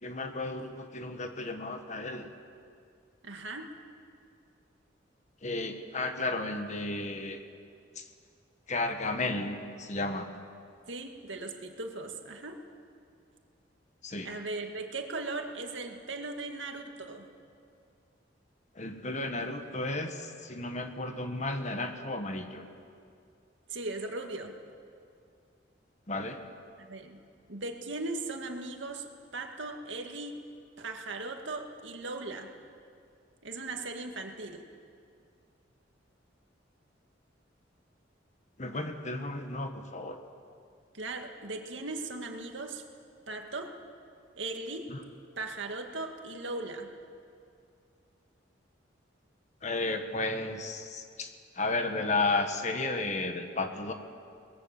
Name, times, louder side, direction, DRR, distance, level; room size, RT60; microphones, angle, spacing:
voice 1, 0.0-2.3 5.4-7.4 7.9-8.1 8.7-10.3 14.0-14.3 18.7-22.7 26.1-26.4 38.6-40.2 44.9-45.0 49.6-53.9, left 2 dB, 40° left, 6 dB, 1.5 m, -33 dB
voice 2, 3.2-3.7 10.9-12.6 14.2-17.3 23.7-24.6 26.8-27.2 27.5-29.1 29.3-30.4 30.8-32.5 33.4-34.6 40.9-42.8 43.3-43.7 44.4-44.9 45.4-46.9, right 2 dB, 80° right, 4 dB, 2.1 m, -38 dB
23.0 x 20.0 x 7.5 m, 2.4 s
head